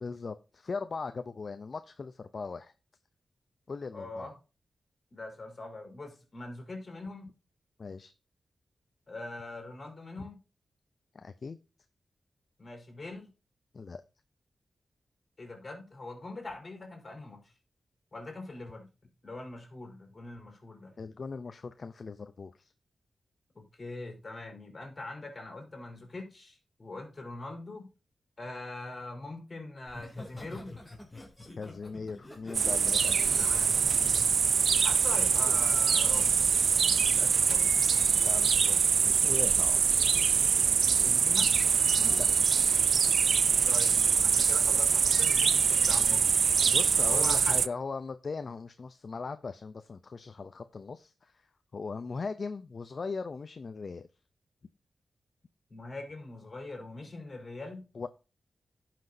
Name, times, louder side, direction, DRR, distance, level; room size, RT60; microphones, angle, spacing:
voice 1, 0.0-2.7 3.7-4.3 7.8-8.1 10.2-10.3 11.1-11.6 13.7-14.0 21.0-22.7 31.6-33.5 38.2-40.0 42.0-42.3 46.7-51.4 51.7-54.1 57.9-58.1, left 4 dB, 50° left, 0.5 m, -39 dB
voice 2, 3.9-4.3 5.1-7.3 9.1-10.4 12.6-13.3 15.4-17.5 18.1-18.9 19.2-20.9 23.5-27.9 28.4-30.7 33.4-33.7 34.8-36.4 36.7-37.9 40.9-41.6 43.6-46.2 47.0-47.7 55.7-57.8, left 2 dB, 30° left, 4.5 m, -43 dB
Laughter, 29.9-35.5 36.0-36.3, left 2 dB, 5° left, 2.8 m, -46 dB
sound 1, 32.5-47.7, right 6 dB, 75° right, 0.4 m, -24 dB
15.5 x 5.9 x 2.7 m
wide cardioid pair, 120°, 0 cm